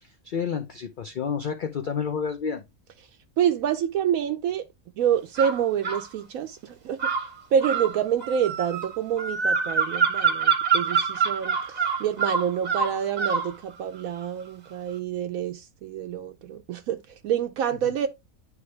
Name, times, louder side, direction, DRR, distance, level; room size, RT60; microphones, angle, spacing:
voice 1, 0.0-2.6, left 6 dB, 55° left, 0.6 m, -30 dB
voice 2, 3.4-4.6 5.0-7.0 7.5-18.1, right 9 dB, 80° right, 1.0 m, -27 dB
sound 1, 5.4-6.1 7.0-13.5, right 6 dB, 35° right, 0.9 m, -25 dB
9.5 x 3.2 x 3.2 m
omnidirectional pair, 1.5 m